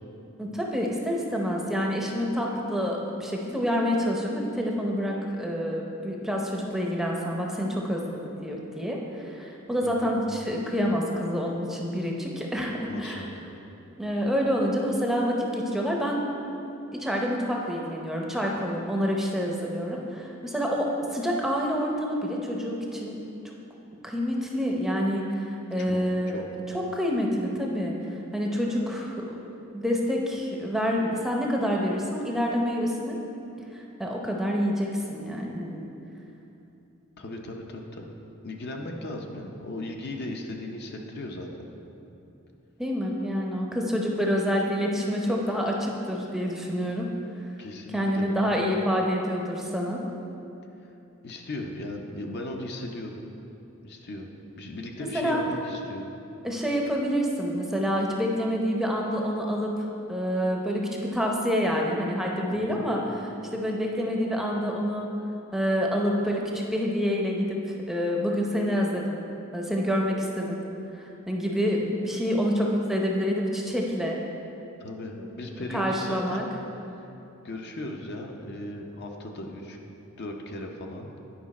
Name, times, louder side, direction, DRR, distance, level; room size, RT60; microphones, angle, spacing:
voice 1, 0.4-13.3 14.0-16.2 16.9-23.2 24.0-26.4 26.7-27.9 28.3-29.4 29.7-33.2 33.7-35.9 42.8-47.1 47.9-50.0 55.0-55.4 56.4-59.7 60.1-63.0 63.5-65.1 65.5-67.6 67.9-69.2 69.5-70.6 70.9-74.2 75.0-75.3 75.7-76.4, equal, ahead, -1 dB, 0.6 m, -27 dB
voice 2, 9.8-10.1 12.9-13.4 25.8-26.4 37.2-38.2 38.4-41.7 47.6-48.3 51.2-53.2 53.8-54.3 54.6-56.1 62.5-62.8 74.8-76.5 76.9-77.1 77.4-79.8 80.2-81.1, left 1 dB, 50° left, 2 dB, 0.7 m, -37 dB
9.8 x 5.1 x 4.1 m, 2.9 s
head